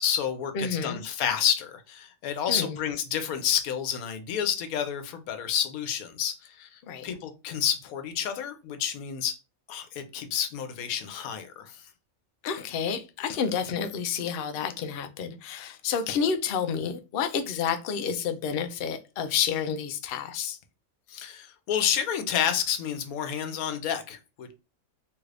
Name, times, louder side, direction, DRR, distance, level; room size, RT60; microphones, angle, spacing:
voice 1, 0.0-9.4 9.7-11.8 21.1-24.5, left 9 dB, 90° left, 1.1 m, -30 dB
voice 2, 0.5-1.0 2.5-2.8 6.8-7.1 12.4-20.6, left 7 dB, 65° left, 0.5 m, -30 dB
3.1 x 2.4 x 3.2 m
omnidirectional pair, 1.5 m